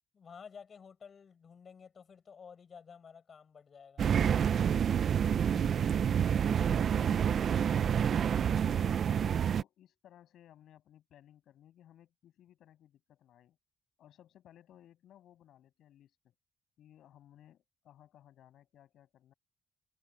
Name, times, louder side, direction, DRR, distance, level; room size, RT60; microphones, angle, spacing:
voice 1, 0.1-4.2, left 6 dB, 45° left, 4.8 m, -52 dB
sound 1, 4.0-9.6, right 8 dB, 55° right, 0.5 m, -28 dB
voice 2, 8.8-13.6 14.0-16.3 16.8-19.3, left 11 dB, 75° left, 7.7 m, -60 dB
cardioid pair, 90°, 0 cm